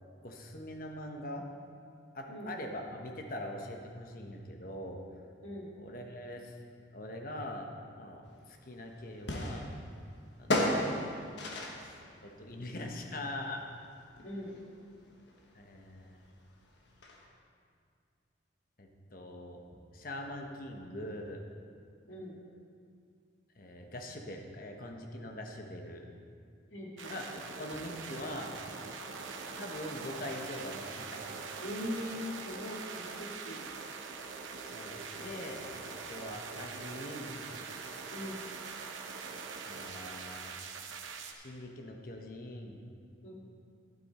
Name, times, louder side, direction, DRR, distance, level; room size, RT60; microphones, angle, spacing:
voice 1, 0.2-1.4 2.1-5.0 5.7-6.6 6.9-7.7 8.0-9.7 10.4-10.8 11.7-12.0 12.2-13.6 15.5-16.2 18.8-21.4 23.6-26.1 27.1-27.3 27.6-28.5 29.6-31.2 34.6-37.4 39.6-40.5 41.3-42.8, left 1 dB, 45° left, 2 dB, 1.0 m, -43 dB
voice 2, 2.3-2.7 5.4-5.7 14.2-14.5 22.0-22.4 26.7-27.2 31.6-32.2 32.4-33.7 38.1-38.4 43.2-43.3, equal, 80° left, -3 dB, 2.3 m, -41 dB
sound 1, 8.3-17.3, left 1 dB, 65° left, 1.3 m, -37 dB
sound 2, 27.0-41.3, right 5 dB, 85° right, 0.9 m, -43 dB
12.0 x 9.1 x 4.2 m, 2.3 s
head